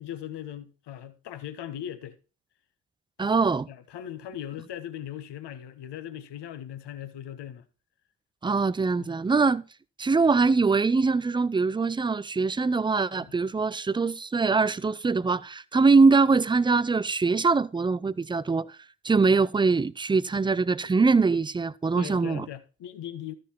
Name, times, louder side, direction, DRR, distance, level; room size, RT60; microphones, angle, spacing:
voice 1, 0.0-2.2 3.2-3.3 3.7-7.6 8.9-9.1 9.4-9.5 13.2-13.3 22.0-23.4, left 10 dB, 60° left, 1.2 m, -39 dB
voice 2, 3.2-3.7 8.4-9.6 10.0-18.7 19.0-22.4, right 4 dB, 10° right, 0.4 m, -23 dB
12.5 x 5.2 x 4.3 m
hypercardioid pair, 45°, 47 cm